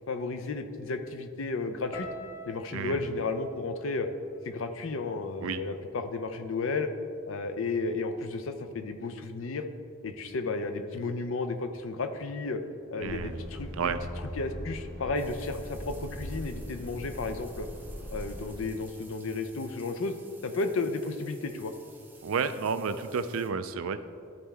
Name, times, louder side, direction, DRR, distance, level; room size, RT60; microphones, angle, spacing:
voice 1, 0.1-2.1 2.5-4.1 4.4-6.9 7.3-9.6 10.0-12.6 12.9-13.9 14.3-17.7 18.1-20.1 20.4-21.7, left 3 dB, 75° left, 8 dB, 0.5 m, -33 dB
sound 1, 1.9-6.1 6.4-7.2 7.8-8.0, left 1 dB, 15° left, 0.9 m, -48 dB
voice 2, 2.7-3.1 5.4-5.6 13.0-13.4 13.8-14.0 22.2-24.0, right 5 dB, 80° right, 11 dB, 0.4 m, -31 dB
Truck, 13.0-18.6, equal, 35° left, 1.3 m, -40 dB
sound 2, 15.1-23.5, right 4 dB, 10° right, 0.6 m, -55 dB
12.0 x 4.3 x 3.4 m, 2.4 s
head